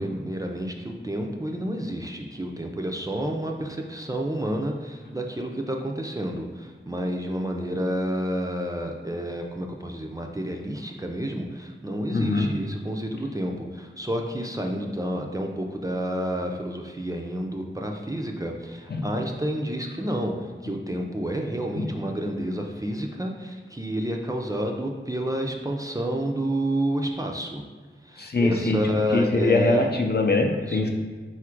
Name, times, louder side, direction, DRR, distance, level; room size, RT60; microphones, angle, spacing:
voice 1, 0.0-27.6 28.0-29.9 30.6-30.8, equal, 15° right, 1 dB, 0.4 m, -30 dB
voice 2, 12.1-12.5 18.9-19.0 21.8-21.9 28.2-28.8 29.1-30.9, left 2 dB, 50° left, 2 dB, 0.5 m, -23 dB
4.1 x 2.4 x 4.4 m, 1.4 s
wide cardioid pair, 60°, 21 cm